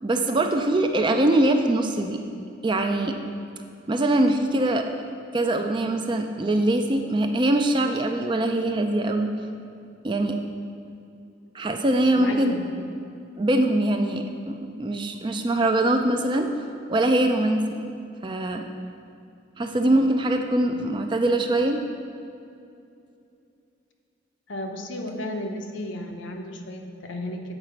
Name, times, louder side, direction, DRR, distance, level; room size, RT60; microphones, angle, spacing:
voice 1, 0.0-2.2 2.6-3.2 3.9-4.9 5.3-9.3 10.0-10.4 11.5-12.5 13.4-16.5 16.9-17.8 18.2-18.6 19.6-21.8, right 1 dB, 25° right, 5 dB, 0.4 m, -23 dB
voice 2, 12.2-12.8 24.5-27.5, left 1 dB, 70° left, 3 dB, 0.8 m, -34 dB
8.0 x 4.9 x 5.7 m, 2.6 s
head